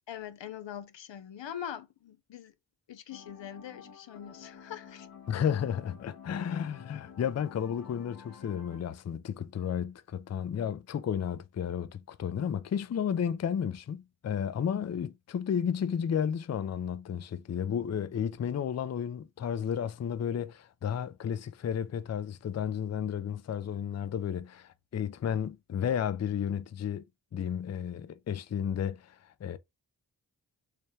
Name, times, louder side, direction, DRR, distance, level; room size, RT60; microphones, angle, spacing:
voice 1, 0.1-2.5 2.9-5.1, left 9 dB, 85° left, 0.6 m, -43 dB
sound 1, 3.1-8.8, left 7 dB, 60° left, 1.1 m, -50 dB
voice 2, 5.3-27.0 27.3-29.2 29.4-29.6, left 8 dB, 40° left, 0.4 m, -32 dB
3.4 x 2.2 x 4.1 m
cardioid pair, 55°, 43 cm